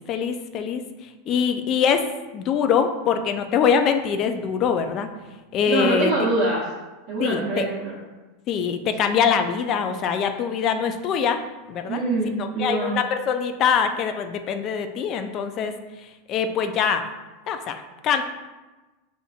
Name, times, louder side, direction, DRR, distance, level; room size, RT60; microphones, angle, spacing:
voice 1, 0.1-0.8 1.3-2.0 2.3-5.1 5.5-6.1 7.2-7.6 8.5-11.4 11.7-12.0 12.4-15.7 16.3-17.0 17.5-18.2, left 7 dB, 40° left, 7 dB, 0.3 m, -23 dB
voice 2, 5.7-6.6 7.1-8.0 11.9-13.0, right 3 dB, 50° right, -8 dB, 0.9 m, -24 dB
5.1 x 2.4 x 2.4 m, 1.2 s
supercardioid pair, 125°, 0 cm